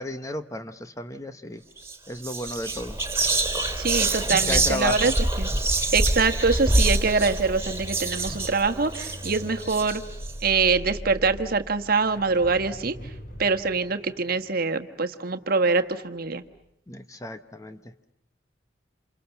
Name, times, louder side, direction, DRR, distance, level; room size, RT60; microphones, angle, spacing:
voice 1, 0.0-1.6 2.1-3.0 4.5-5.1 5.5-5.7 8.2-8.4 16.9-17.9, left 2 dB, 20° left, 9 dB, 1.0 m, -34 dB
Whispering, 1.8-2.0 2.2-10.3, right 2 dB, 15° right, 3.2 m, -26 dB
voice 2, 3.8-5.1 5.4-5.5 5.9-10.0 10.4-13.0 13.4-16.4, right 4 dB, 55° right, 8 dB, 1.4 m, -24 dB
sound 1, 5.8-16.0 16.3-16.6, equal, 50° left, 3.5 m, -42 dB
28.5 x 27.5 x 7.1 m, 0.78 s
head